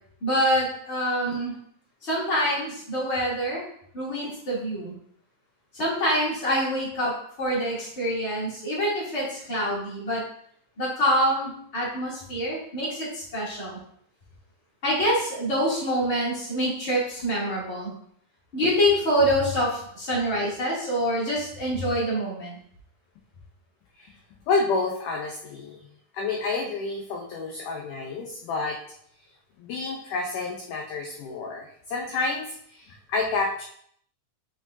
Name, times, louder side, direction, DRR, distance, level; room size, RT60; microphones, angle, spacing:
voice 1, 0.2-1.5 2.0-3.6 3.9-4.9 5.7-7.1 7.4-10.2 10.8-13.8 14.8-17.9 18.5-22.6, equal, 20° left, -6 dB, 2.0 m, -26 dB
voice 2, 24.5-25.8 26.1-28.8 29.6-33.6, left 3 dB, 80° left, 0 dB, 1.9 m, -29 dB
9.2 x 4.9 x 2.6 m, 0.66 s
omnidirectional pair, 4.6 m